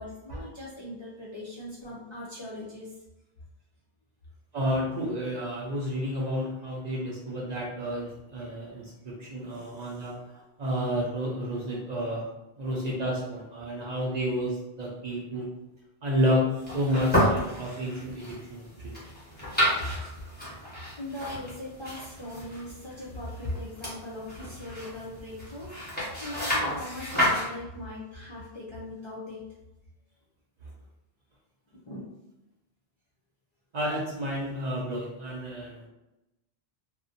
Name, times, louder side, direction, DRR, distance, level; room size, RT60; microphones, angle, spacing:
voice 1, 0.0-2.9 9.6-9.8 21.0-29.4 31.7-32.1, left 1 dB, 45° left, -7 dB, 0.4 m, -39 dB
voice 2, 4.5-12.2 12.6-15.5 16.0-19.0 33.7-35.9, equal, 55° right, -3 dB, 0.5 m, -30 dB
sound 1, 16.6-27.5, equal, 10° left, 0.9 m, -31 dB
2.6 x 2.1 x 2.5 m, 0.95 s
omnidirectional pair, 1.1 m